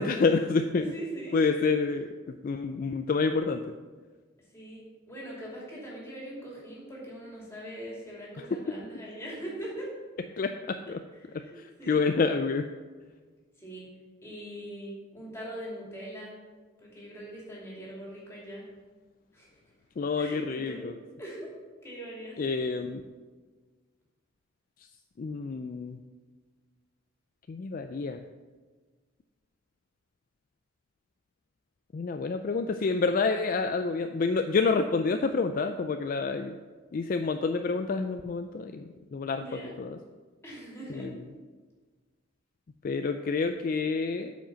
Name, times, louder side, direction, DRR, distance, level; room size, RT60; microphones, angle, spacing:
voice 1, 0.0-0.9 1.3-3.6 8.5-8.6 10.4-11.0 11.3-11.4 11.9-12.7 20.0-20.9 22.4-23.0 25.2-26.0 27.5-28.2 31.9-36.6 36.9-40.0 41.0-41.1 42.8-44.4, left 4 dB, 45° left, 7 dB, 0.3 m, -28 dB
voice 2, 0.7-1.7 4.5-9.9 11.2-12.0 13.6-13.9 14.2-16.3 16.8-18.7 19.3-19.6 20.2-20.9 21.2-21.5 21.8-22.4 39.4-39.7 40.4-41.1, right 1 dB, 15° left, -5 dB, 2.8 m, -41 dB
8.8 x 5.2 x 6.9 m, 1.4 s
head